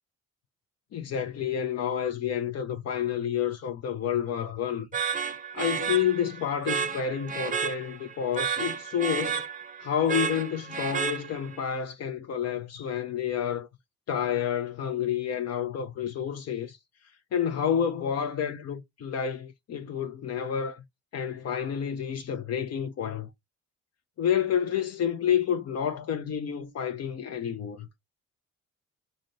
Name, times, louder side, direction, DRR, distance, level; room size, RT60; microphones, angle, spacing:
voice 1, 0.9-4.9 5.5-9.4 9.8-13.7 14.1-16.8 17.3-20.8 21.1-23.3 24.2-27.9, left 8 dB, 55° left, 0.5 m, -29 dB
sound 1, 4.9-11.6, right 6 dB, 25° right, 0.6 m, -32 dB
4.9 x 2.1 x 2.6 m
cardioid pair, 90°, 30 cm